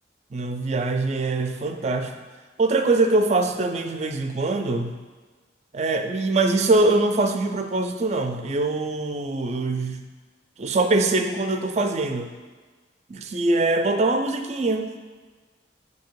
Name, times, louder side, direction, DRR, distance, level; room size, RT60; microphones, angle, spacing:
voice 1, 0.3-2.2 2.6-5.0 5.7-10.0 10.6-12.3 13.1-14.9, right 2 dB, 35° right, 6 dB, 0.4 m, -23 dB
7.8 x 2.7 x 4.6 m, 1.4 s
head